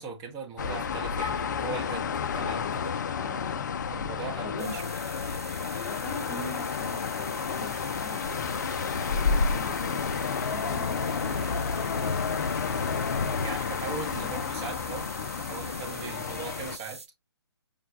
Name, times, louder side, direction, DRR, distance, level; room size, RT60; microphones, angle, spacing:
voice 1, 0.0-3.0 3.9-4.8 13.4-15.1 15.4-17.0, right 4 dB, 20° right, 0.8 m, -39 dB
sound 1, 0.6-16.8, left 6 dB, 45° left, 0.3 m, -31 dB
voice 2, 3.0-3.7 4.4-4.7 5.9-8.6 9.0-10.0 10.5-11.5 14.2-14.4, left 1 dB, 15° left, 0.7 m, -42 dB
sound 2, 4.6-17.1, right 4 dB, 75° right, 0.7 m, -44 dB
sound 3, 7.8-13.5, left 4 dB, 75° left, 0.7 m, -34 dB
5.3 x 2.2 x 2.6 m
figure-of-eight pair, 140°, 14 cm